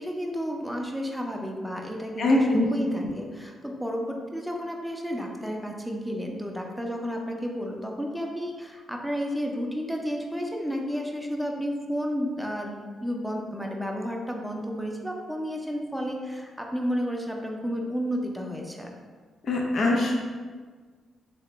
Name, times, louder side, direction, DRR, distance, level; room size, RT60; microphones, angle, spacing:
voice 1, 0.0-18.9, equal, ahead, 0 dB, 0.6 m, -32 dB
voice 2, 2.2-2.7 19.4-20.2, left 2 dB, 60° left, 0 dB, 0.6 m, -22 dB
3.2 x 2.9 x 3.2 m, 1.5 s
cardioid pair, 70°, 0 cm